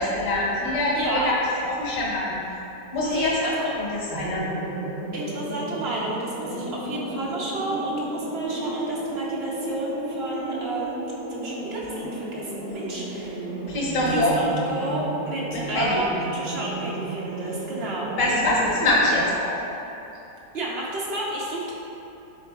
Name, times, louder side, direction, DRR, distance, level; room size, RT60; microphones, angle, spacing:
voice 1, 0.0-1.3 1.6-2.4 2.9-3.5 3.8-4.4 13.7-14.3 15.7-16.0 18.2-19.5, left 1 dB, 35° left, -6 dB, 1.3 m, -24 dB
voice 2, 1.0-1.3 3.0-3.7 5.1-11.0 11.4-13.5 14.0-18.1 20.5-21.7, right 1 dB, 55° right, -4 dB, 0.7 m, -31 dB
sound 1, 4.1-18.8, right 2 dB, 70° right, 1.2 m, -33 dB
10.5 x 3.9 x 2.4 m, 3.0 s
omnidirectional pair, 1.9 m